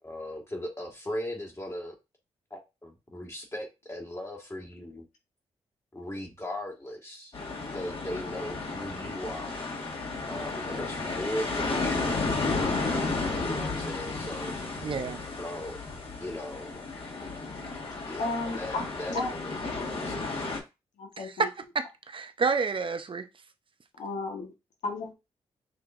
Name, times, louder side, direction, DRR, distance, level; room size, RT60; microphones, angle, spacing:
voice 1, 0.0-1.9 2.5-5.0 5.9-9.6 10.3-14.5 15.4-15.8 16.2-16.7 18.1-19.5 19.8-20.4, left 1 dB, 25° left, 1.8 m, -38 dB
sound 1, 7.3-20.6, left 3 dB, 50° left, 1.9 m, -33 dB
voice 2, 14.8-15.2 21.2-21.5 21.7-23.3, right 5 dB, 45° right, 0.7 m, -29 dB
voice 3, 18.2-18.8 19.1-19.3 21.0-21.5 24.0-24.5 24.8-25.1, left 3 dB, 80° left, 1.3 m, -33 dB
6.6 x 2.9 x 2.6 m
supercardioid pair, 50°, 12 cm